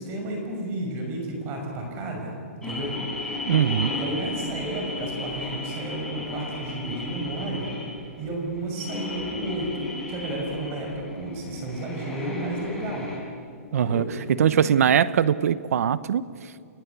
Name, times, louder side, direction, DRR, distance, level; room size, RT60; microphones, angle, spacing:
voice 1, 0.0-3.0 3.9-7.7 8.2-13.1 13.8-14.1 14.4-14.6, right 1 dB, 30° right, 1 dB, 6.0 m, -32 dB
sound 1, 2.6-13.2, left 2 dB, 5° left, 6.9 m, -34 dB
voice 2, 3.5-3.9 13.7-16.7, right 9 dB, 70° right, 16 dB, 1.0 m, -22 dB
30.0 x 18.0 x 8.3 m, 2.3 s
hypercardioid pair, 150°, 8 cm